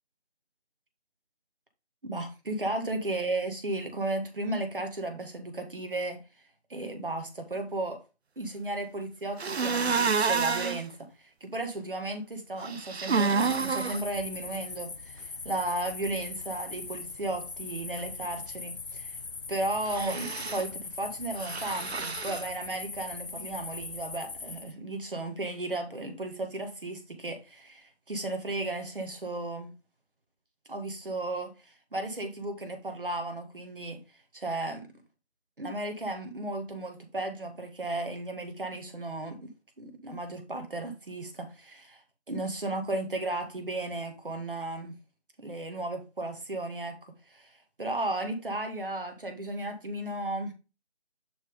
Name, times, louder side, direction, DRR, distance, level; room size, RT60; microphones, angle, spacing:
voice 1, 2.0-6.2 6.7-8.0 8.4-19.2 19.5-29.7 30.7-34.0 34.3-34.8 35.6-39.5 39.8-42.0 42.3-45.0 45.4-47.0 47.3-50.5, right 2 dB, 50° right, 2.0 m, -34 dB
sound 1, 9.4-10.8 12.6-14.0 19.9-20.6 21.4-22.4, right 5 dB, 70° right, 0.6 m, -29 dB
sound 2, 13.4-24.7, left 4 dB, 55° left, 0.5 m, -40 dB
11.0 x 3.7 x 3.8 m
figure-of-eight pair, 160°, 33 cm